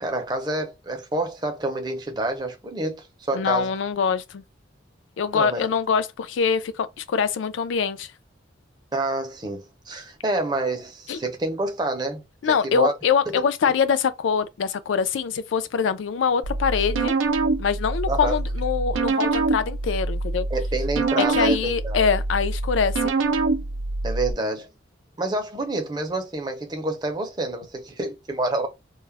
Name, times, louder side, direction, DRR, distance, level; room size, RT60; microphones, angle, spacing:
voice 1, 0.0-3.7 5.3-5.6 8.9-12.9 13.3-13.4 18.1-18.4 20.5-22.1 24.0-24.7 25.2-28.7, right 2 dB, 20° right, 0.5 m, -28 dB
voice 2, 3.3-4.4 5.2-8.1 11.1-11.2 12.4-17.1 17.6-20.5 21.2-23.1, left 6 dB, 80° left, 0.4 m, -24 dB
sound 1, 16.4-24.3, right 3 dB, 85° right, 0.4 m, -25 dB
2.2 x 2.0 x 3.2 m
head